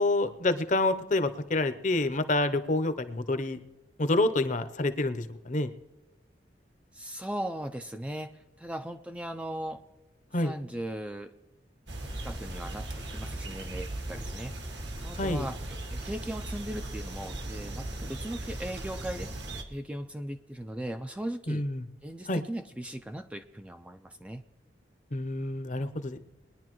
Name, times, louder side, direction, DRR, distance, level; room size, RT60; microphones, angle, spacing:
voice 1, 0.0-3.6 4.0-5.7 10.3-10.6 15.2-15.5 21.5-21.9 22.3-22.4 25.1-26.2, left 2 dB, 40° left, 10 dB, 0.7 m, -28 dB
voice 2, 6.9-9.8 10.4-11.3 12.2-14.5 15.0-19.3 19.7-21.6 22.0-24.4, right 1 dB, 5° right, 7 dB, 0.4 m, -38 dB
sound 1, 11.9-19.6, right 1 dB, 65° right, 1.4 m, -38 dB
21.5 x 10.5 x 3.1 m, 1.1 s
head